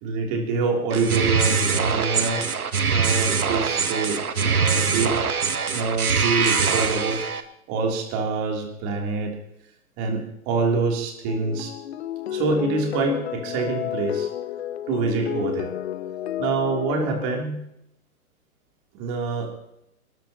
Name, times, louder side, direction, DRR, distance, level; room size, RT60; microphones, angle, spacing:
voice 1, 0.0-2.4 2.9-5.2 5.7-7.2 7.7-9.3 10.0-11.7 12.3-14.3 14.9-15.7 16.4-17.6 18.9-19.5, right 4 dB, 30° right, 1 dB, 3.3 m, -26 dB
sound 1, 0.9-7.4, right 5 dB, 80° right, 1.3 m, -23 dB
sound 2, 11.3-17.4, left 11 dB, 50° left, 0.6 m, -31 dB
27.0 x 13.0 x 3.0 m, 0.81 s
figure-of-eight pair, 115°, 44 cm